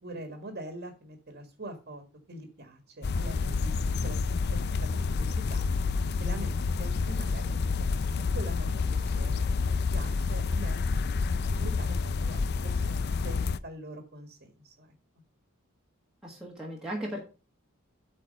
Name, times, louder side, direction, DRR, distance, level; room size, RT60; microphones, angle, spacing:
voice 1, 0.0-2.0 2.3-4.6 4.9-5.7 6.2-8.0 8.3-10.8 11.5-14.9, right 1 dB, 45° right, 5 dB, 1.6 m, -44 dB
sound 1, 3.0-13.6, left 4 dB, 50° left, 0.4 m, -29 dB
voice 2, 16.2-17.2, equal, 5° right, -4 dB, 1.5 m, -36 dB
8.6 x 4.2 x 6.5 m, 0.34 s
head